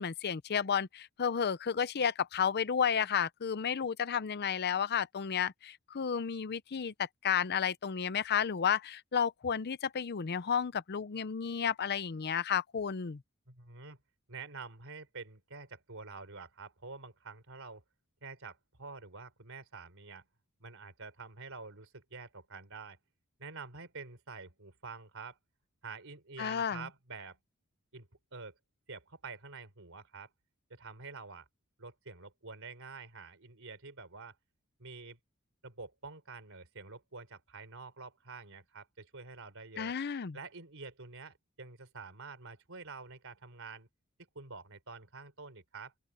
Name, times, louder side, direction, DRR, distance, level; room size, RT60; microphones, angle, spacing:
voice 1, 0.0-13.2 26.4-26.9 39.8-40.4, left 7 dB, 50° left, 0.6 m, -32 dB
voice 2, 13.5-14.0 14.3-17.8 18.2-20.3 20.6-23.0 23.4-25.4 25.8-27.4 27.9-28.5 28.9-30.3 30.7-31.5 31.8-34.4 34.8-35.2 35.6-39.9 40.3-43.9 44.3-45.9, right 4 dB, 65° right, 4.1 m, -48 dB
open air
head